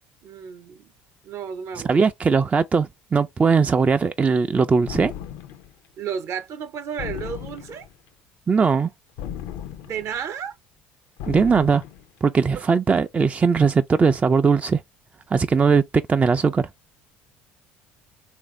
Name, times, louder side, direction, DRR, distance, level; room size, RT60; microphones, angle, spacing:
voice 1, 0.2-0.9 1.2-2.0 6.0-7.9 9.8-10.6 12.5-12.6, right 7 dB, 55° right, 0.7 m, -32 dB
voice 2, 1.8-5.1 8.5-8.9 11.3-11.8 12.2-14.8 15.3-15.8 16.1-16.7, right 5 dB, 25° right, 0.3 m, -19 dB
sound 1, 4.9-5.7 7.0-8.0 9.2-10.2 11.2-12.1, left 10 dB, 70° left, 0.5 m, -35 dB
3.4 x 2.5 x 3.1 m
hypercardioid pair, 65°, 6 cm